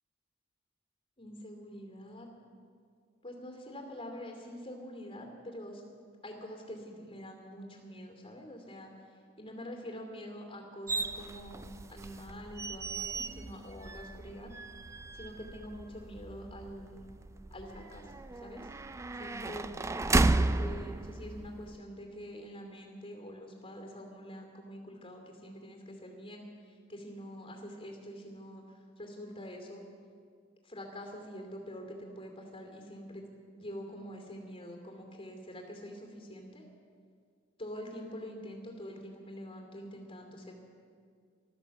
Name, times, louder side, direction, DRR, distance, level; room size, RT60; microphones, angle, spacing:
voice 1, 1.2-2.3 3.2-5.8 6.2-8.9 9.4-14.5 15.1-17.1 17.5-18.1 18.4-18.7 19.2-19.7 20.1-28.6 29.0-29.8 30.6-33.2 33.5-36.6 37.6-40.5, equal, 30° left, 2 dB, 2.7 m, -45 dB
sound 1, 10.9-21.8, right 2 dB, 15° right, 0.3 m, -34 dB
15.0 x 13.0 x 7.1 m, 2.1 s
head